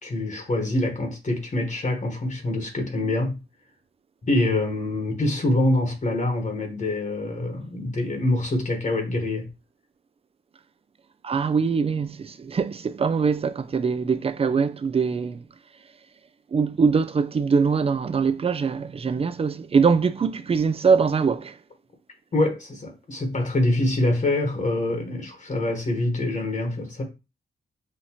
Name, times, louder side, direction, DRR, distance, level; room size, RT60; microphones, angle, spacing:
voice 1, 0.0-3.4 4.2-9.5 22.3-27.0, left 1 dB, 40° left, 1.2 m, -25 dB
voice 2, 11.2-15.4 16.5-21.6, right 5 dB, 30° right, 0.4 m, -23 dB
5.6 x 2.5 x 2.9 m
cardioid pair, 85°, 19 cm